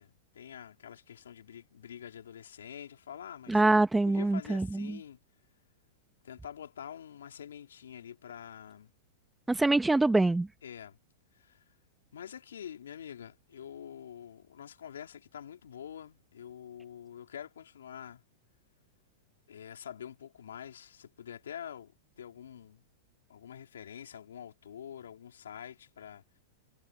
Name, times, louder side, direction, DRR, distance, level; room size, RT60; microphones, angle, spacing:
voice 1, 0.0-3.6 4.1-5.2 6.2-8.9 10.6-11.0 11.3-11.6 12.1-18.2 19.5-22.8 23.3-26.4, left 9 dB, 85° left, 3.7 m, -46 dB
voice 2, 3.5-5.0 9.5-10.5, right 2 dB, 5° right, 1.1 m, -25 dB
hypercardioid pair, 120°, 0 cm